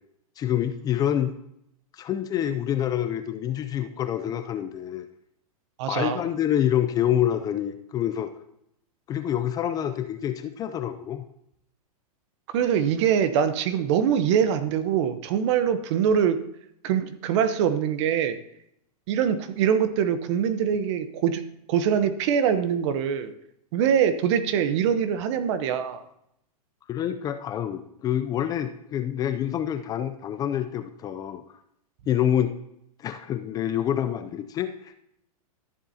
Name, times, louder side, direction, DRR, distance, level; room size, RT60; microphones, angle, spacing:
voice 1, 0.4-1.3 1.9-5.1 5.9-8.3 9.1-11.2 26.9-31.4 32.1-32.5 33.0-34.9, left 10 dB, 20° left, 9 dB, 0.4 m, -27 dB
voice 2, 5.8-6.2 12.5-16.4 16.8-18.4 19.1-21.4 21.7-23.3 23.7-26.0, right 8 dB, 50° right, 11 dB, 0.9 m, -23 dB
13.5 x 7.4 x 2.8 m, 0.76 s
hypercardioid pair, 140°, 19 cm